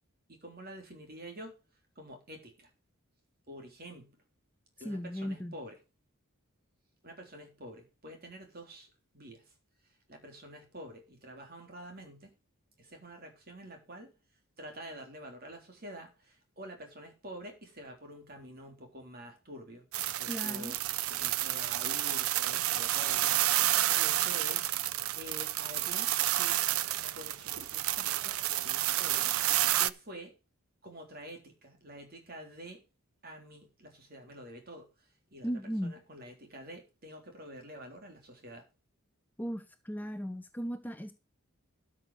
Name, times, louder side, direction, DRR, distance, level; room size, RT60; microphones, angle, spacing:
voice 1, 0.3-1.6 2.0-2.7 3.5-4.2 4.8-5.8 7.0-9.5 10.1-12.3 12.8-14.1 14.6-20.8 21.1-24.7 25.1-26.6 27.0-28.4 28.6-30.3 30.8-32.8 33.2-34.9 35.3-38.6, equal, 45° right, 3.5 m, -48 dB
voice 2, 4.8-5.5 20.3-20.7 35.4-35.9 39.4-41.1, equal, 10° left, 0.7 m, -36 dB
sound 1, 19.9-29.9, right 14 dB, 80° right, 0.6 m, -30 dB
13.0 x 6.3 x 4.9 m
head